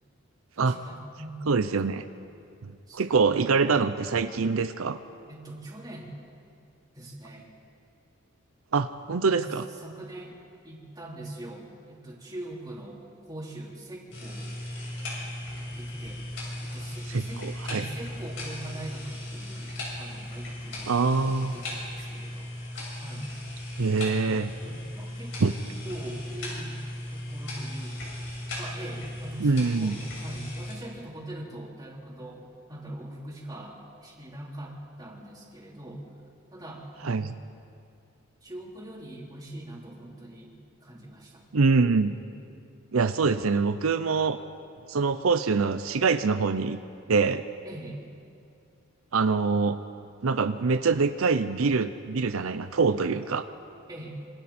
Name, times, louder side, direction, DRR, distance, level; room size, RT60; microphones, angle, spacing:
voice 1, 0.6-1.4 2.9-3.0 5.3-6.2 6.9-7.5 9.2-10.4 10.6-14.5 15.5-16.2 16.6-19.7 20.0-22.5 23.0-23.3 23.9-24.2 24.5-25.3 25.8-26.8 27.1-28.0 28.5-36.0 36.5-37.2 38.4-40.5 40.8-41.4 42.2-42.3 47.6-48.0 53.9-54.2, right 1 dB, 20° right, -4 dB, 3.8 m, -42 dB
voice 2, 1.5-2.0 2.6-5.0 8.7-9.6 17.1-17.8 20.9-21.6 23.8-24.5 25.4-25.5 29.4-29.9 37.0-37.3 41.5-42.1 42.9-44.4 44.9-46.8 47.1-47.4 49.1-49.8 50.2-53.5, right 4 dB, 85° right, 10 dB, 0.6 m, -24 dB
sound 1, 14.1-30.7, left 1 dB, 60° left, 7.2 m, -37 dB
26.5 x 25.5 x 4.3 m, 2.5 s
head